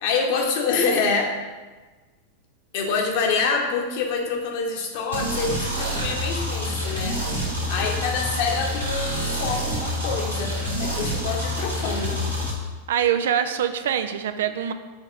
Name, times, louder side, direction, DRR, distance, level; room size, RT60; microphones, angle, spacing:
voice 1, 0.0-1.4 2.7-7.2 7.7-12.2, left 4 dB, 50° left, 1 dB, 1.2 m, -26 dB
sound 1, 5.1-12.5, left 1 dB, 90° right, 1.8 m, -27 dB
voice 2, 12.9-14.7, right 9 dB, 60° right, 9 dB, 0.4 m, -24 dB
6.3 x 3.5 x 5.6 m, 1.3 s
figure-of-eight pair, 90°, 0 cm